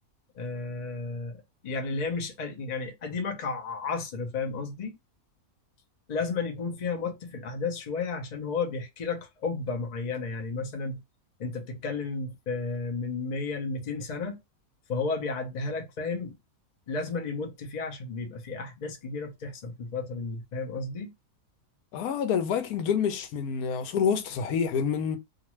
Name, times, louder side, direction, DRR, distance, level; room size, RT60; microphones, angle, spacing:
voice 1, 0.3-5.0 6.1-11.0 11.4-14.4 14.9-16.4 16.9-21.1, left 4 dB, 45° left, 0.6 m, -33 dB
voice 2, 21.9-25.2, left 7 dB, 90° left, 1.1 m, -27 dB
2.5 x 2.5 x 3.0 m
omnidirectional pair, 1.6 m